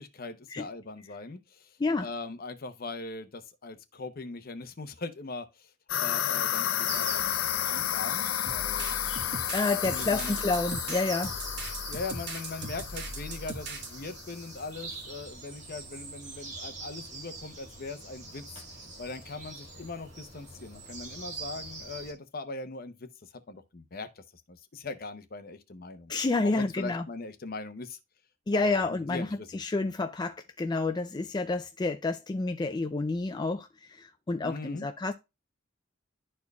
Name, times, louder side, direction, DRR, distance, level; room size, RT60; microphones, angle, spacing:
voice 1, 0.0-5.7 6.0-8.9 9.9-10.3 11.9-18.4 19.0-23.1 23.5-26.1 26.4-28.0 28.5-29.6 34.4-34.9, left 3 dB, 50° left, 0.8 m, -40 dB
sound 1, 5.9-14.1, left 11 dB, 80° left, 0.5 m, -32 dB
sound 2, 6.9-22.1, right 3 dB, 35° right, 1.9 m, -44 dB
sound 3, 8.5-13.9, right 2 dB, 60° right, 1.4 m, -39 dB
voice 2, 9.5-11.3 26.1-27.0 28.5-35.1, left 3 dB, 20° left, 0.4 m, -29 dB
12.0 x 4.4 x 2.3 m
head